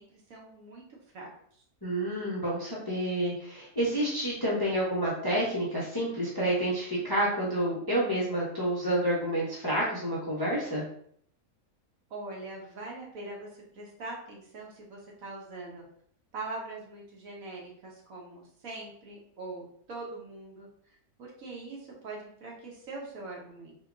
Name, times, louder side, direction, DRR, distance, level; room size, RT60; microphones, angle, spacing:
voice 1, 0.0-1.6 12.1-15.8 16.3-20.7 21.2-23.8, right 2 dB, 65° right, -2 dB, 1.3 m, -42 dB
voice 2, 1.8-10.8, right 1 dB, 25° left, -6 dB, 0.5 m, -29 dB
3.4 x 2.3 x 3.5 m, 0.63 s
omnidirectional pair, 1.6 m